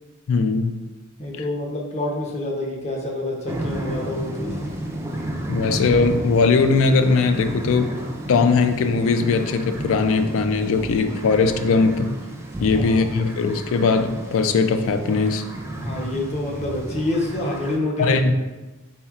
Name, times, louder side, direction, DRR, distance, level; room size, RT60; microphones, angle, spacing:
voice 1, 0.3-0.8 1.3-1.4 5.5-8.0 8.3-12.2 12.6-15.4 18.0-18.3, left 4 dB, 65° left, 9 dB, 0.3 m, -20 dB
voice 2, 1.2-4.6 12.7-13.1 15.8-18.2, left 1 dB, 30° left, -1 dB, 0.7 m, -27 dB
sound 1, 3.5-17.8, right 1 dB, 10° right, 0.4 m, -32 dB
4.3 x 4.2 x 2.4 m, 1.2 s
head